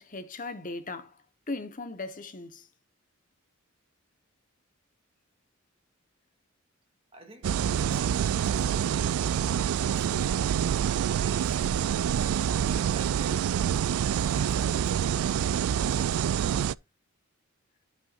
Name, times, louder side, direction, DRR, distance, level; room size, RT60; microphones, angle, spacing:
voice 1, 0.0-2.7, left 3 dB, 40° left, 1.2 m, -38 dB
voice 2, 7.1-9.3 9.7-10.8 11.1-11.9 12.5-13.6 14.1-15.4 15.8-16.4, right 2 dB, 25° right, 2.5 m, -49 dB
sound 1, 7.4-16.7, right 9 dB, 75° right, 0.3 m, -26 dB
12.0 x 5.5 x 2.6 m
head